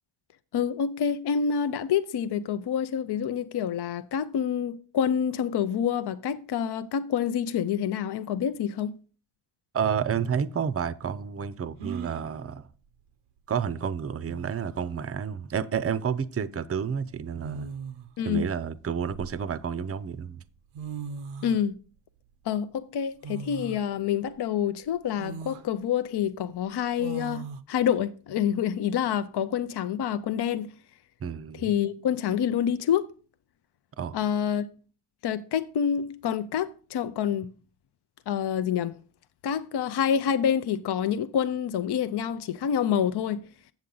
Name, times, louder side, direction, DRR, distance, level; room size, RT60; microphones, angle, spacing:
voice 1, 0.5-8.9 18.2-18.5 21.4-21.7 22.5-27.4 27.7-30.7 31.6-33.1 34.1-34.7 35.2-37.5 38.3-39.0 39.4-43.4, left 8 dB, 55° left, 0.5 m, -27 dB
voice 2, 9.7-12.7 13.5-17.7 18.3-20.4 31.2-31.6 34.0-34.2, right 7 dB, 30° right, 0.5 m, -30 dB
sound 1, 10.2-10.3 11.8-12.3 13.8-13.9 14.3-14.8 16.1-16.3 17.4-18.1 18.8-19.8 20.5-20.6 20.7-21.6 23.2-23.8 24.4-24.5 25.2-25.7 27.0-27.6, right 6 dB, 85° right, 0.7 m, -38 dB
7.7 x 7.1 x 3.8 m
cardioid pair, 65°, 49 cm